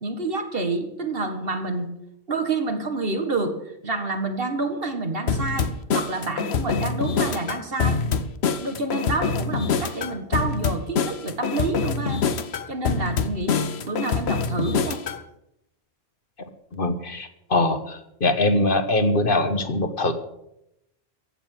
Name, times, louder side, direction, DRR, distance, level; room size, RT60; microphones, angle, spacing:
voice 1, 0.0-1.9 2.3-3.6 3.8-5.7 5.9-8.0 8.6-12.2 12.7-13.6 13.9-15.0, right 3 dB, 60° right, 6 dB, 2.0 m, -28 dB
sound 1, 5.3-15.2, left 5 dB, 70° left, 1.1 m, -25 dB
voice 2, 16.4-20.1, left 2 dB, 55° left, 9 dB, 1.4 m, -23 dB
15.5 x 7.1 x 9.1 m, 0.82 s
omnidirectional pair, 1.1 m